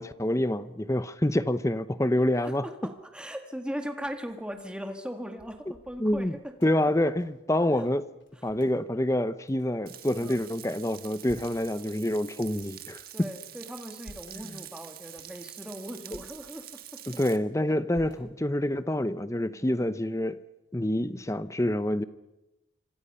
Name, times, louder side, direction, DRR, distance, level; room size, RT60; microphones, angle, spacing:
voice 1, 0.0-2.6 6.0-6.4 6.6-8.0 8.4-13.0 14.5-14.6 16.1-16.2 17.1-20.4 20.7-22.0, left 1 dB, 15° left, 14 dB, 0.7 m, -27 dB
voice 2, 2.4-6.5 7.8-7.9 10.1-10.5 13.1-17.0 19.5-19.9, equal, 5° right, 5 dB, 1.9 m, -39 dB
sound 1, 2.9-3.3 3.8-7.5 7.8-7.9 8.2-8.7 9.4-10.5 10.9-11.7 12.3-13.2 13.7-14.4 15.0-15.4 15.9-16.3 16.8-17.5 17.9-18.6, equal, 70° left, 4.0 m, -54 dB
Frying (food), 9.9-17.4, right 12 dB, 50° right, 1.5 m, -46 dB
27.0 x 26.0 x 5.6 m, 0.99 s
head